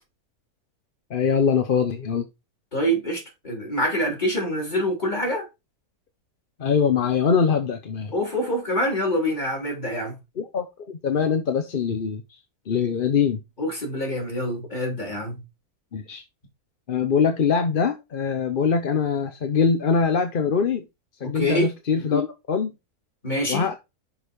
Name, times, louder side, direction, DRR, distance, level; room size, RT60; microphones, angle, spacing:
voice 1, 1.1-2.3 6.6-8.1 10.4-12.2 12.7-13.4 15.9-16.2 16.9-20.8 21.2-22.7 23.5-23.7, left 6 dB, 45° left, 0.8 m, -23 dB
voice 2, 2.7-5.5 8.1-10.1 13.6-15.4 21.2-21.7 23.2-23.7, equal, 30° left, 3.8 m, -25 dB
6.4 x 4.7 x 5.2 m
omnidirectional pair, 1.6 m